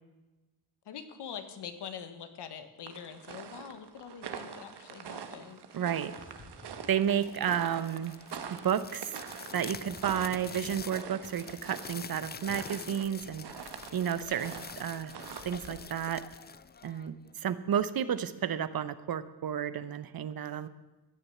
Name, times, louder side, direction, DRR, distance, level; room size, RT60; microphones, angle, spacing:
voice 1, 0.8-5.8, left 7 dB, 80° left, 9 dB, 1.5 m, -44 dB
sound 1, 2.9-15.9, right 7 dB, 75° right, 1.3 m, -45 dB
voice 2, 5.7-6.1 6.9-8.2 8.5-9.1 9.5-13.5 13.9-15.1 15.4-16.2 16.8-20.7, right 9 dB, 60° right, 14 dB, 0.9 m, -31 dB
sound 2, 6.2-7.7 8.0-8.5 8.9-9.6 9.8-11.4 11.7-12.2 12.6-13.3, left 2 dB, 45° left, 3.0 m, -57 dB
sound 3, 7.1-17.4, left 6 dB, 25° left, 0.4 m, -46 dB
15.5 x 7.0 x 8.4 m, 1.1 s
cardioid pair, 80°, 40 cm